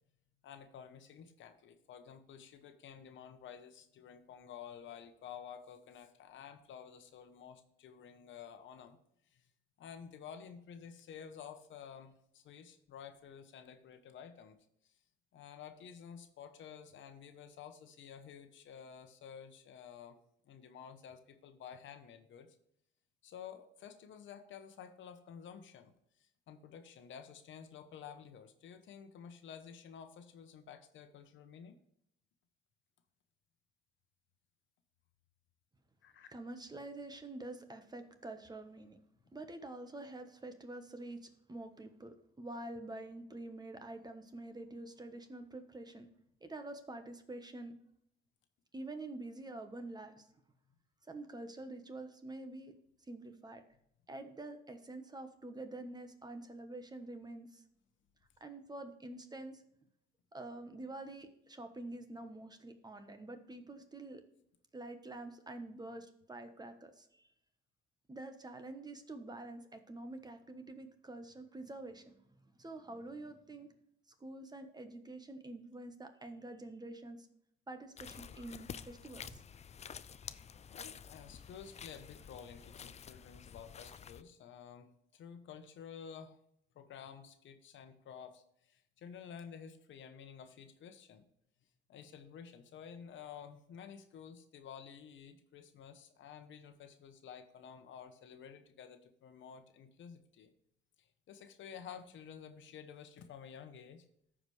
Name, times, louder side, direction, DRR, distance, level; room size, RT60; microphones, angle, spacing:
voice 1, 0.4-9.0 9.3-9.4 9.8-14.6 15.3-20.2 20.5-22.5 23.2-25.9 26.2-31.8 36.0-36.3 80.7-86.4 86.7-91.2 91.9-100.5 101.0-104.0, left 7 dB, 70° left, 8 dB, 1.0 m, -52 dB
voice 2, 36.3-39.0 39.3-46.1 46.4-47.7 48.7-50.3 51.1-52.7 53.1-53.6 54.1-57.6 58.4-59.6 60.3-64.2 64.7-67.3 68.1-73.7 74.2-77.3 77.7-79.4, right 2 dB, 20° right, 7 dB, 1.2 m, -47 dB
sound 1, 78.0-84.2, left 7 dB, 35° left, 0.4 m, -50 dB
14.0 x 5.0 x 3.3 m, 0.75 s
cardioid pair, 90°, 20 cm